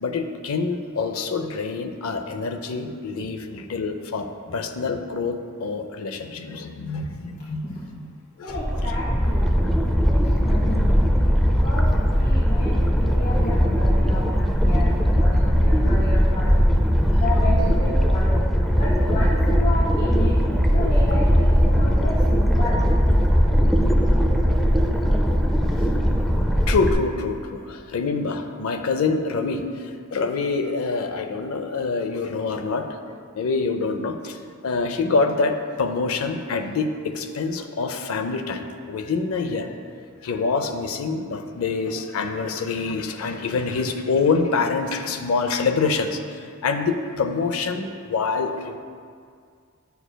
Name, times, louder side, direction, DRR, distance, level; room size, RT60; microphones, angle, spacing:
voice 1, 0.0-4.3 4.5-8.1 8.4-8.6 13.3-13.6 17.4-17.8 26.7-34.4 34.6-39.7 40.2-48.8, left 4 dB, 70° left, 7 dB, 0.5 m, -26 dB
voice 2, 8.4-9.6 10.1-10.2 10.4-11.0 11.6-16.5 17.2-18.4 18.8-20.3 20.7-22.9, left 1 dB, 50° left, -9 dB, 1.3 m, -31 dB
sound 1, 8.5-26.9, equal, ahead, 0.4 m, -19 dB
9.9 x 6.9 x 2.2 m, 2.2 s
head